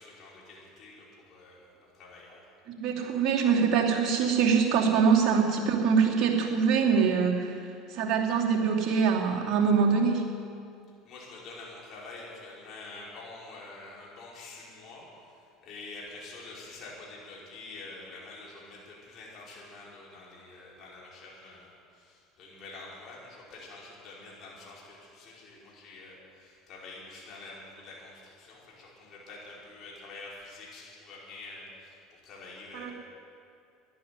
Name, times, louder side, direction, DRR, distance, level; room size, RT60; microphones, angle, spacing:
voice 1, 0.0-2.4 11.0-32.9, left 3 dB, 50° left, -5 dB, 5.1 m, -47 dB
voice 2, 2.7-10.3 32.7-32.9, right 6 dB, 55° right, -1 dB, 2.7 m, -24 dB
13.5 x 11.0 x 9.6 m, 2.4 s
hypercardioid pair, 80°, 0 cm